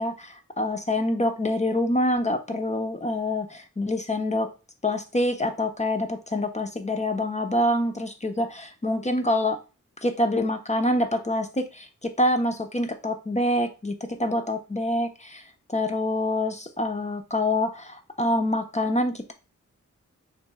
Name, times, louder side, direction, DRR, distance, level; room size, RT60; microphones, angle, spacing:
voice 1, 0.0-4.5 4.8-9.6 10.0-19.3, left 1 dB, 25° left, 6 dB, 0.5 m, -26 dB
3.0 x 2.5 x 3.5 m, 0.30 s
cardioid pair, 55°, 31 cm